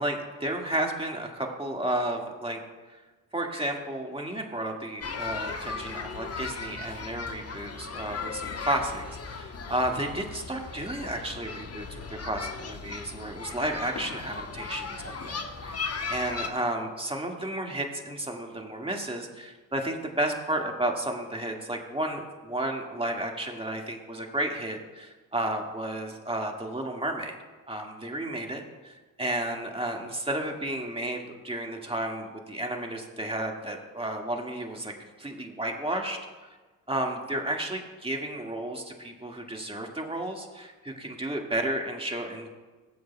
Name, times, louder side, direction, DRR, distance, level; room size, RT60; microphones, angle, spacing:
voice 1, 0.0-2.6 3.3-27.3 27.7-36.2 36.9-42.5, right 1 dB, 15° right, 1 dB, 1.9 m, -32 dB
sound 1, 5.0-16.5, left 4 dB, 35° left, 1.1 m, -37 dB
18.0 x 7.8 x 2.3 m, 1.3 s
hypercardioid pair, 50°, 41 cm